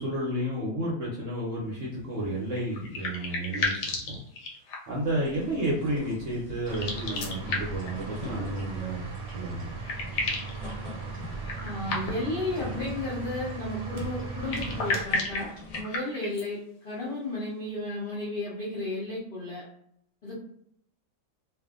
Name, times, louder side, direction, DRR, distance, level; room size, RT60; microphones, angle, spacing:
voice 1, 0.0-3.7 4.1-4.2 4.9-9.8, right 1 dB, 60° right, -4 dB, 0.9 m, -31 dB
sound 1, 2.5-5.0 6.6-7.9 9.3-9.4 9.6-10.6 11.4-12.4 14.3-16.5, left 3 dB, 75° left, 1.2 m, -33 dB
sound 2, 5.0-15.8, left 1 dB, 35° left, 0.9 m, -44 dB
sound 3, 6.7-15.0, right 4 dB, 85° right, 1.3 m, -38 dB
voice 2, 11.6-16.6 16.8-19.7 20.2-20.4, left 2 dB, 55° left, -8 dB, 0.5 m, -33 dB
2.6 x 2.5 x 2.4 m, 0.69 s
omnidirectional pair, 1.9 m